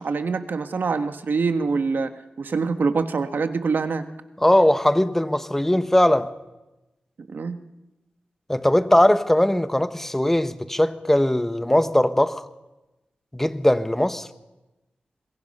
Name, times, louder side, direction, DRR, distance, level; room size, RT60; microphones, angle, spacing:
voice 1, 0.0-2.1 2.4-4.0 7.3-7.6, right 4 dB, 70° right, 1.3 m, -24 dB
voice 2, 4.4-6.3 8.5-12.4 13.3-14.3, left 1 dB, 10° left, 1.1 m, -20 dB
25.5 x 22.0 x 5.4 m
wide cardioid pair, 90°, 3 cm